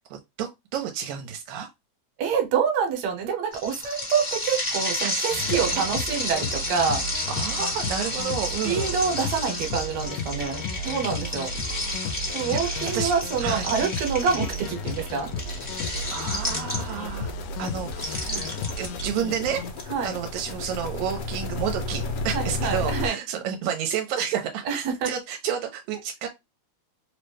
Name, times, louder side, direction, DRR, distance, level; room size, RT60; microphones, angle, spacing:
voice 1, 0.4-1.7 5.0-5.2 7.3-8.9 12.5-13.7 16.1-17.3 17.6-19.6 20.0-26.3, right 8 dB, 85° right, 2.0 m, -31 dB
voice 2, 2.2-7.0 8.7-11.5 12.3-15.3 19.9-20.2 22.3-23.2 24.7-25.1, right 6 dB, 70° right, 2.0 m, -26 dB
sound 1, 3.5-17.1 17.9-19.8, left 1 dB, 15° left, 0.6 m, -31 dB
sound 2, 5.3-19.7, left 3 dB, 85° left, 1.9 m, -34 dB
sound 3, 7.6-7.7 8.1-8.2 8.5-23.1, left 3 dB, 65° left, 1.4 m, -36 dB
4.5 x 2.1 x 3.1 m
omnidirectional pair, 3.3 m